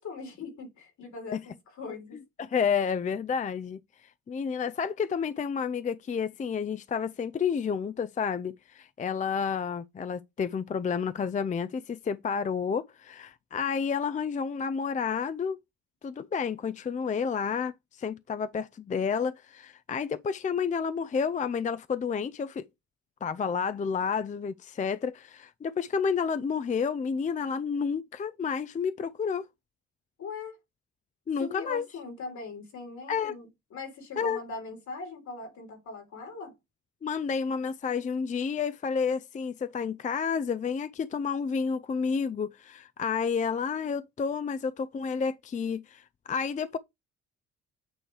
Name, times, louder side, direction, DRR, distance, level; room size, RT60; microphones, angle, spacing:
voice 1, 0.0-2.2 30.2-30.6 31.4-36.5, left 4 dB, 70° left, 3.3 m, -40 dB
voice 2, 2.4-3.8 4.3-15.6 16.0-22.7 23.2-29.5 31.3-31.8 33.1-33.3 34.2-34.4 37.0-46.8, left 6 dB, 25° left, 0.4 m, -30 dB
8.8 x 3.3 x 4.7 m
cardioid pair, 90°, 30 cm